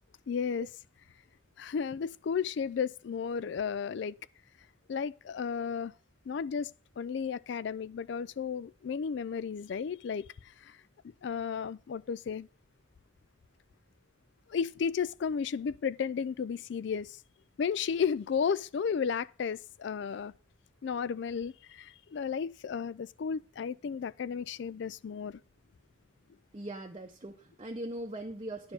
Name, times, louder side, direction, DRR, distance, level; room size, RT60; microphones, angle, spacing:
voice 1, 0.3-0.7 1.6-4.2 4.9-5.9 6.3-10.8 11.2-12.5 14.5-17.2 17.6-20.3 20.8-25.4, left 6 dB, 60° left, 0.3 m, -33 dB
voice 2, 26.5-28.7, right 1 dB, 30° right, 0.7 m, -40 dB
10.5 x 4.4 x 7.1 m
head